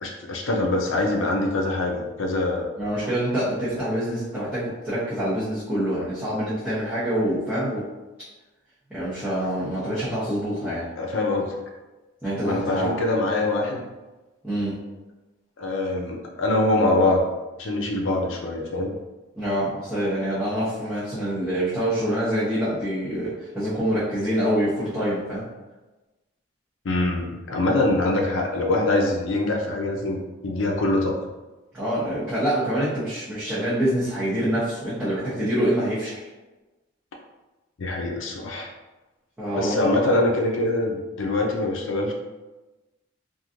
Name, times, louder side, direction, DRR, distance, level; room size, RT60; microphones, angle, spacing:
voice 1, 0.0-2.7 11.0-11.6 12.4-13.8 15.6-17.2 17.6-18.9 26.8-31.1 37.8-38.7 39.6-42.1, left 2 dB, 75° left, 1 dB, 0.5 m, -24 dB
voice 2, 2.8-7.8 8.9-10.9 12.2-13.0 14.4-14.7 19.4-25.5 31.7-36.3 39.4-40.1, equal, 5° right, -14 dB, 0.8 m, -26 dB
3.0 x 2.6 x 2.5 m, 1.1 s
head